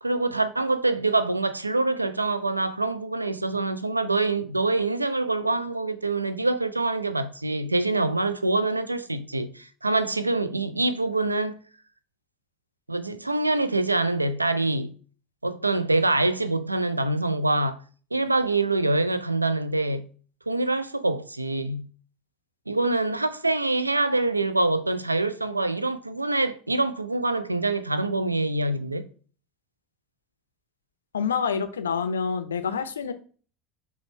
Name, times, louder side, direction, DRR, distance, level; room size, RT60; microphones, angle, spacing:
voice 1, 0.0-11.6 12.9-15.0 15.4-17.8 18.1-20.1 20.5-21.9 22.7-29.1, right 2 dB, 85° right, 0.3 m, -25 dB
voice 2, 31.1-33.1, left 6 dB, 75° left, 0.4 m, -27 dB
5.1 x 2.1 x 4.2 m
figure-of-eight pair, 75°, 0 cm